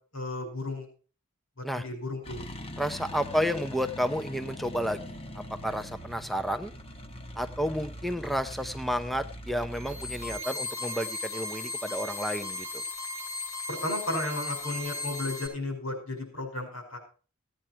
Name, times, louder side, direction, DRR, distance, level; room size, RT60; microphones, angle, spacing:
voice 1, 0.1-0.9 1.8-2.4 13.7-17.0, left 2 dB, 70° left, 3 dB, 5.4 m, -33 dB
Chevrolet Caprice (motor at different speeds & driving away), 2.2-10.4, left 1 dB, 25° left, 1.2 m, -42 dB
voice 2, 2.8-5.0 5.4-6.7 7.4-12.8, equal, ahead, 11 dB, 0.5 m, -31 dB
sound 1, 9.7-15.5, left 3 dB, 85° left, 6.9 m, -36 dB
17.0 x 8.9 x 4.5 m, 0.38 s
head